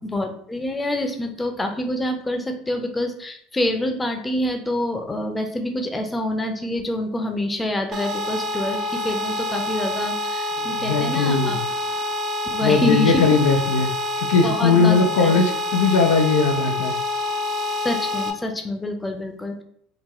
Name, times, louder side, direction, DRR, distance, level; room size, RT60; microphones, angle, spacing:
voice 1, 0.0-11.7 12.5-13.3 14.4-15.4 17.8-19.6, left 1 dB, 15° left, 5 dB, 0.6 m, -26 dB
sound 1, 7.9-18.3, left 2 dB, 50° right, 0.6 m, -27 dB
voice 2, 10.8-11.6 12.6-13.9 14.2-16.9, left 4 dB, 80° left, 5 dB, 0.4 m, -19 dB
3.8 x 2.1 x 3.0 m, 0.70 s
hypercardioid pair, 80°, 0 cm